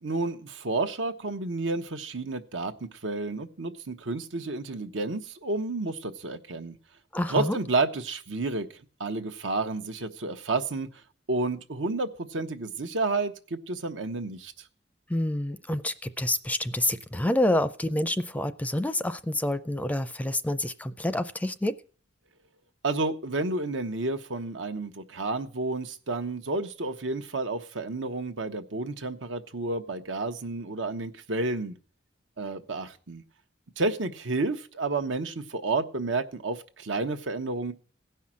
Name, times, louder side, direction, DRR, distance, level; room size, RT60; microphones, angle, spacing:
voice 1, 0.0-6.8 7.3-8.7 9.0-10.9 11.3-14.5 22.8-31.8 32.4-33.2 33.8-37.7, right 3 dB, 85° right, 7 dB, 1.0 m, -30 dB
voice 2, 7.1-7.6 15.1-21.8, left 1 dB, 10° left, 13 dB, 0.5 m, -28 dB
16.0 x 5.7 x 7.4 m, 0.42 s
head